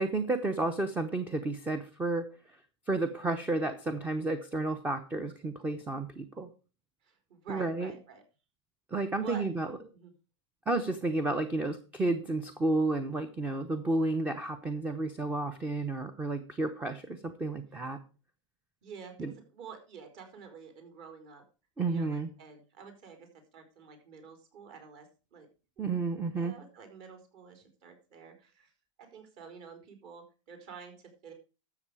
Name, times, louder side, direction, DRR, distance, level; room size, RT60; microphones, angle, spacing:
voice 1, 0.0-2.3 2.9-6.5 7.5-7.9 8.9-9.7 10.7-18.0 19.2-19.3 21.8-22.3 25.8-26.5, right 2 dB, 10° right, 10 dB, 0.9 m, -31 dB
voice 2, 7.0-8.2 9.2-9.5 9.9-10.1 18.8-21.4 21.9-23.3 23.5-25.5 25.8-26.0 26.3-28.7 29.0-31.3, right 6 dB, 45° right, 5 dB, 4.5 m, -49 dB
13.0 x 7.1 x 4.8 m, 0.33 s
supercardioid pair, 150°, 16 cm